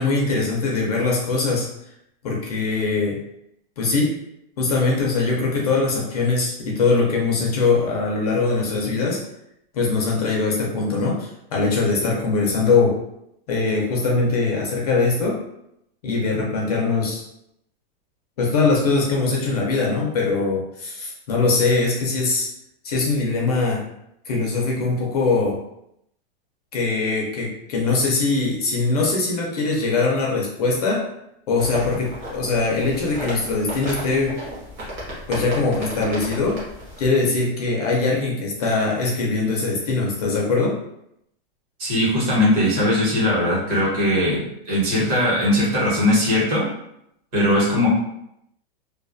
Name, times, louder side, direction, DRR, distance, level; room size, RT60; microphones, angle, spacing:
voice 1, 0.0-1.7 2.2-3.2 3.8-4.2 4.6-9.2 9.7-13.0 13.5-15.4 16.0-17.2 18.4-22.5 22.8-23.9 24.3-25.6 26.7-31.1 31.5-34.4 35.3-36.6 37.0-40.8, left 3 dB, 40° left, -2 dB, 0.4 m, -22 dB
sound 1, 31.6-37.1, equal, 25° right, 0.6 m, -34 dB
voice 2, 41.8-46.7 47.3-47.9, left 1 dB, 40° right, -5 dB, 1.0 m, -20 dB
2.3 x 2.2 x 2.5 m, 0.79 s
supercardioid pair, 175°, 30 cm